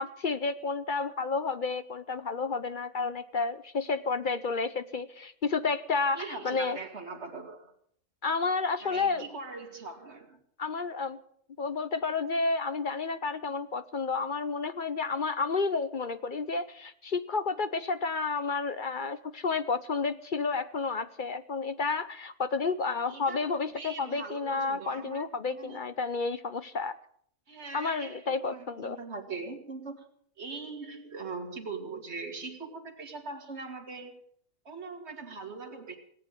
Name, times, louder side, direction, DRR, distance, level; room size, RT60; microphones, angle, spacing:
voice 1, 0.0-6.8 8.2-9.3 10.6-11.2 11.6-26.9 27.7-29.0, left 4 dB, 45° left, 12 dB, 0.8 m, -31 dB
voice 2, 6.1-7.7 8.8-10.4 23.1-25.9 27.5-30.1 30.4-34.2 34.6-36.0, right 4 dB, 50° right, 4 dB, 2.6 m, -41 dB
18.0 x 8.7 x 9.0 m, 0.65 s
omnidirectional pair, 1.4 m